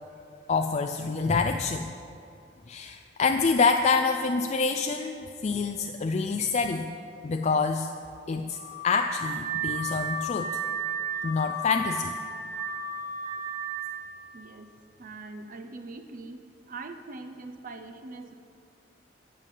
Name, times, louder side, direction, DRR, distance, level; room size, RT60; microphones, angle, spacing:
voice 1, 0.5-1.9 2.7-6.9 7.2-7.9 8.3-8.6 8.8-10.6 11.2-12.1, left 4 dB, 40° left, 6 dB, 0.4 m, -26 dB
Car / Alarm, 8.5-14.0, right 3 dB, 20° right, 1.5 m, -33 dB
voice 2, 14.3-14.7 15.0-16.4 16.7-18.3, right 3 dB, 45° right, 7 dB, 0.7 m, -42 dB
13.5 x 5.5 x 9.2 m, 2.5 s
head